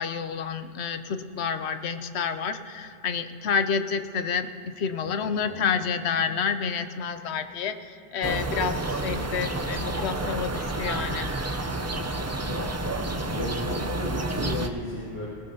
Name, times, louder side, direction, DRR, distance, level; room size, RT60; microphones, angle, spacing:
voice 1, 0.0-4.5 4.8-11.3, left 6 dB, 90° left, 9 dB, 1.0 m, -29 dB
voice 2, 5.0-5.6 12.3-13.0 13.3-15.3, equal, 25° left, -8 dB, 2.4 m, -35 dB
sound 1, 8.2-14.7, right 2 dB, 20° right, 0.4 m, -30 dB
19.0 x 17.0 x 2.8 m, 2.7 s
omnidirectional pair, 1.1 m